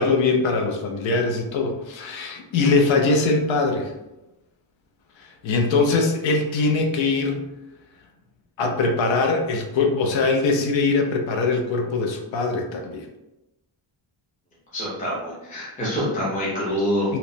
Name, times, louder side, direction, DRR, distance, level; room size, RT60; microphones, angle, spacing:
voice 1, 0.0-3.9 5.2-7.4 8.6-13.1 15.8-15.9 17.1-17.2, left 3 dB, 65° left, 2 dB, 0.5 m, -22 dB
voice 2, 14.7-17.1, equal, 15° left, -7 dB, 0.5 m, -26 dB
2.9 x 2.1 x 2.5 m, 0.96 s
wide cardioid pair, 180°, 50 cm